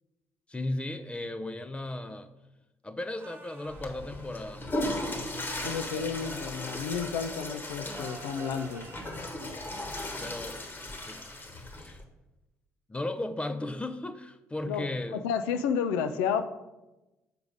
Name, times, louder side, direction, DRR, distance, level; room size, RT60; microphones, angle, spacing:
voice 1, 0.5-2.3 2.8-4.6 10.2-12.0 12.9-15.2, left 2 dB, 15° left, 9 dB, 0.5 m, -36 dB
sound 1, 3.2-3.9 7.9-9.3, right 4 dB, 30° right, 0.8 m, -47 dB
Water / Toilet flush, 3.7-12.0, left 1 dB, 35° left, 1.3 m, -37 dB
voice 2, 5.6-8.9 14.7-16.4, left 7 dB, 75° left, 9 dB, 0.4 m, -31 dB
6.7 x 4.7 x 5.2 m, 1.0 s
hypercardioid pair, 50°, 7 cm